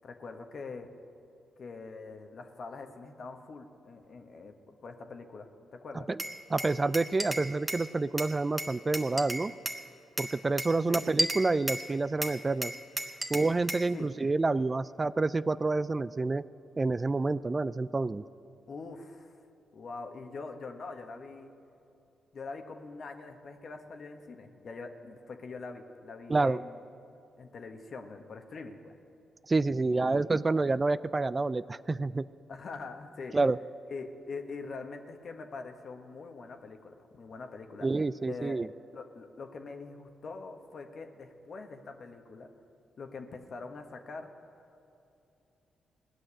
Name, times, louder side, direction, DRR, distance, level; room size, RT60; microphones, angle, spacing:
voice 1, 0.0-0.9 1.6-6.1 10.9-11.0 13.9-14.1 18.7-19.4 19.7-21.5 22.3-26.8 27.4-29.0 29.8-30.2 32.5-33.4 33.9-37.9 38.2-38.6 38.9-42.5 43.0-44.6, left 4 dB, 60° left, 5 dB, 1.4 m, -44 dB
Glass, 6.2-7.9 8.2-9.8 10.2-11.9 12.2-13.9, right 1 dB, 15° right, 1.6 m, -34 dB
voice 2, 6.5-9.5 10.2-12.7 13.3-16.4 16.8-18.2 26.3-26.6 29.5-32.3 33.3-33.6 37.8-38.7, right 3 dB, 35° right, 16 dB, 0.4 m, -28 dB
18.0 x 6.4 x 9.9 m, 2.8 s
hypercardioid pair, 40°, 0 cm